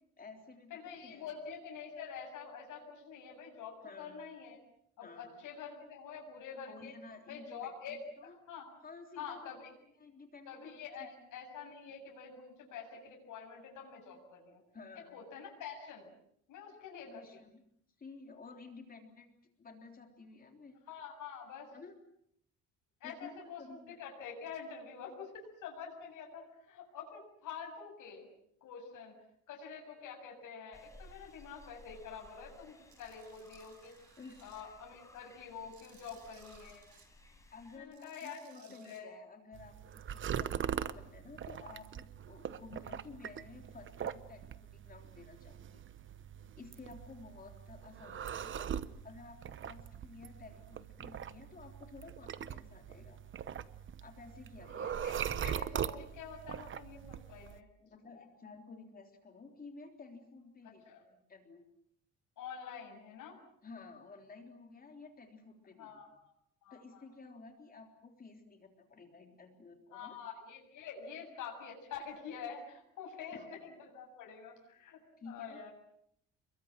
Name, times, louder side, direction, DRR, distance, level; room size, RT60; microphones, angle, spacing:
voice 1, 0.2-1.3 3.8-4.2 5.0-5.4 6.5-8.3 8.8-9.6 10.0-11.3 14.7-15.2 17.1-17.6 18.0-19.3 19.6-20.8 21.7-22.0 23.0-23.3 23.6-24.0 34.2-34.4 37.5-45.8 46.6-48.7 49.0-53.2 54.0-55.2 57.9-60.8 61.1-61.6 63.6-65.9 66.7-70.2 73.3-73.5 75.2-75.7, left 4 dB, 25° left, 4 dB, 3.6 m, -53 dB
voice 2, 0.7-4.6 5.0-6.9 7.3-8.7 9.2-9.7 10.5-14.6 15.1-16.1 16.5-17.4 20.9-21.7 23.0-28.3 28.6-29.1 29.5-33.9 34.4-36.9 37.7-39.1 54.7-57.7 58.0-58.1 60.8-61.0 62.4-63.4 65.8-66.3 66.6-67.1 69.9-75.0 75.3-75.7, left 6 dB, 70° left, 0 dB, 7.5 m, -47 dB
sound 1, 30.7-37.8, left 1 dB, 10° left, 6.4 m, -59 dB
Tools, 32.9-34.6 35.1-37.1 37.8-39.0, right 8 dB, 60° right, 5.6 m, -63 dB
sound 2, 39.5-57.6, right 9 dB, 40° right, 1.0 m, -41 dB
29.5 x 22.5 x 7.4 m, 0.73 s
cardioid pair, 155°, 32 cm